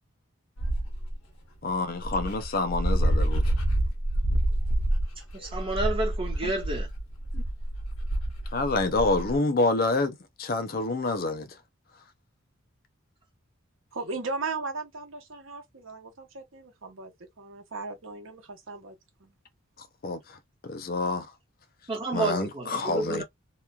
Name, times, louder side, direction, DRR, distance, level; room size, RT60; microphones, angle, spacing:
Dog, 0.6-1.1 1.7-1.8 2.0-9.4, right 1 dB, 80° left, 1.0 m, -27 dB
voice 1, 1.6-3.5 6.4-6.5 7.3-7.4 8.5-11.5 20.0-20.4 20.6-21.3 22.1-23.2, left 3 dB, 45° left, 0.5 m, -27 dB
voice 2, 5.3-6.9 21.9-23.2, right 2 dB, 25° right, 1.0 m, -30 dB
voice 3, 13.9-19.3, right 3 dB, 70° right, 0.9 m, -37 dB
2.9 x 2.3 x 2.2 m
head